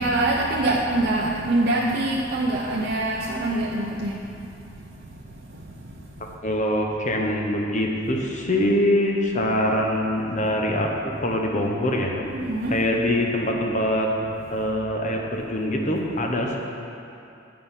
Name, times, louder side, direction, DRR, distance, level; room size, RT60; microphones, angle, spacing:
voice 1, 0.0-4.8 5.1-5.2 5.5-6.3 12.3-12.8, right 2 dB, 50° right, -4 dB, 0.6 m, -25 dB
voice 2, 6.4-12.1 12.7-14.1 14.5-16.6, left 1 dB, 40° left, 1 dB, 0.9 m, -24 dB
9.2 x 5.1 x 5.6 m, 2.7 s
head